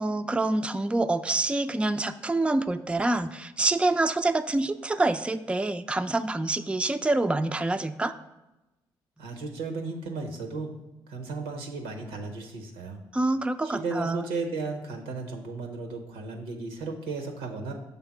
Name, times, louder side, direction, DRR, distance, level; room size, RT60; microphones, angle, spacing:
voice 1, 0.0-8.1 13.1-14.2, right 2 dB, 10° right, 10 dB, 0.4 m, -26 dB
voice 2, 9.2-10.7 11.1-13.0 13.6-17.7, right 3 dB, 85° right, 4 dB, 0.8 m, -34 dB
5.6 x 3.6 x 5.8 m, 1.0 s
hypercardioid pair, 40°, 11 cm